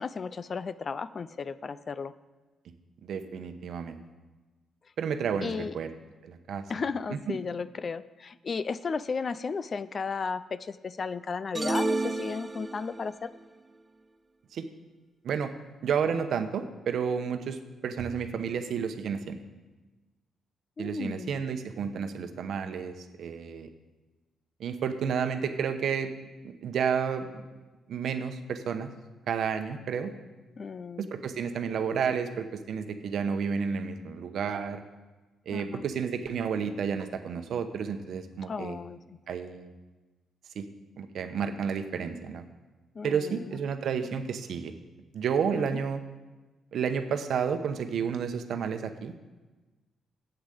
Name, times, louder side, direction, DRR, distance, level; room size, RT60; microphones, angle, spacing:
voice 1, 0.0-2.1 5.4-5.8 6.7-13.3 20.8-21.3 30.6-31.1 35.5-35.8 38.4-39.2 42.9-43.6 45.5-45.8, left 5 dB, 45° left, 15 dB, 0.4 m, -34 dB
voice 2, 3.0-4.0 5.0-5.9 6.2-6.6 14.5-14.6 15.2-15.5 15.8-19.4 20.8-23.7 24.6-26.1 26.4-27.4 27.9-28.9 29.3-30.1 31.0-34.8 35.5-38.8 39.3-39.7 40.5-40.7 41.0-42.4 43.0-44.7 45.1-46.0 46.7-49.1, right 6 dB, 70° right, 8 dB, 0.9 m, -31 dB
sound 1, 11.5-13.1, right 2 dB, 25° right, 0.6 m, -30 dB
8.3 x 8.0 x 7.8 m, 1.2 s
cardioid pair, 85°, 0 cm